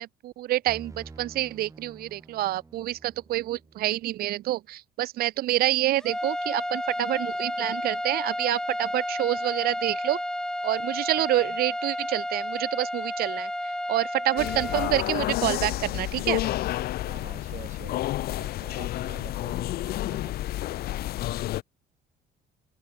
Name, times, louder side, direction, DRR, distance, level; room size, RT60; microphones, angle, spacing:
voice 1, 0.0-10.2 10.6-13.5 13.9-16.4, right 15 dB, 65° right, 0.5 m, -27 dB
sound 1, 0.7-4.4, right 3 dB, 20° right, 3.8 m, -49 dB
sound 2, 6.0-14.9, left 1 dB, 5° left, 0.8 m, -31 dB
voice 2, 11.2-11.6 17.1-20.5, right 8 dB, 45° right, 3.4 m, -48 dB
sound 3, 14.4-21.6, left 15 dB, 65° left, 0.7 m, -30 dB
open air
cardioid pair, 110°, 17 cm